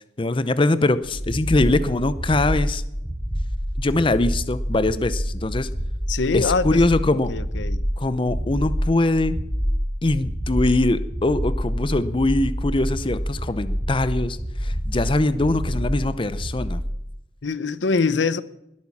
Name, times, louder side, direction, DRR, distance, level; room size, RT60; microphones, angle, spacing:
voice 1, 0.2-2.8 3.8-5.7 6.3-7.3 8.0-9.4 10.0-16.8, left 2 dB, 30° left, 0.6 m, -22 dB
sound 1, 1.0-16.9, equal, 5° right, 6.5 m, -27 dB
voice 2, 6.1-6.8 7.3-7.8 17.4-18.4, left 4 dB, 85° left, 0.7 m, -23 dB
20.5 x 8.7 x 7.2 m
head